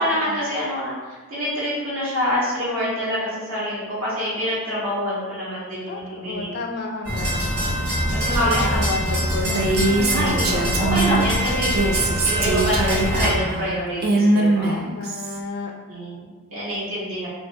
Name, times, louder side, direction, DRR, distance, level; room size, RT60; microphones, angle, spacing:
voice 1, 0.0-6.5 7.7-7.8 8.1-8.8 9.9-14.8 15.9-17.3, equal, 65° right, -10 dB, 1.2 m, -26 dB
voice 2, 5.9-7.8 8.4-9.9 14.7-15.7, left 3 dB, 45° left, 1 dB, 0.4 m, -31 dB
sound 1, 7.0-13.3, equal, 80° right, 1.3 m, -24 dB
Female speech woman speaking, 9.4-11.2 11.6-15.4, right 2 dB, 45° right, 0.4 m, -22 dB
2.6 x 2.6 x 3.3 m, 1.3 s
head